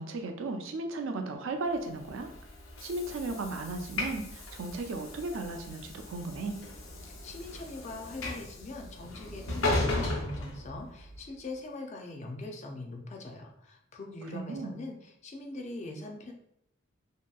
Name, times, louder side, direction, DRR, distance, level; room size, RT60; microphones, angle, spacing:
voice 1, 0.0-2.3 2.8-6.6 14.3-14.7, right 2 dB, 70° right, 5 dB, 0.4 m, -35 dB
Train / Sliding door, 1.9-11.2, left 2 dB, 80° left, 0.7 m, -36 dB
voice 2, 7.0-16.3, left 2 dB, 35° left, 2 dB, 0.3 m, -42 dB
2.8 x 2.5 x 2.3 m, 0.74 s
head